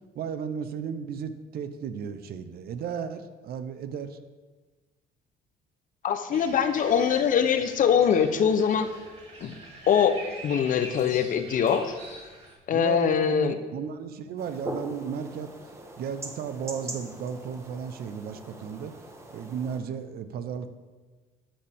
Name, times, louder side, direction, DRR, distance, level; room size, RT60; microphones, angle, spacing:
voice 1, 0.1-4.2 12.7-15.5 16.0-18.9 19.3-20.7, right 7 dB, 65° right, 10 dB, 0.8 m, -34 dB
voice 2, 6.0-8.9 9.4-9.5 9.9-10.2 10.4-11.9 12.7-13.6, left 8 dB, 50° left, 10 dB, 0.8 m, -23 dB
sound 1, 6.3-12.5, right 2 dB, 40° right, 3.1 m, -44 dB
sound 2, 14.4-19.8, right 1 dB, 15° right, 1.3 m, -41 dB
13.0 x 7.1 x 3.6 m, 1.3 s
cardioid pair, 110°, 17 cm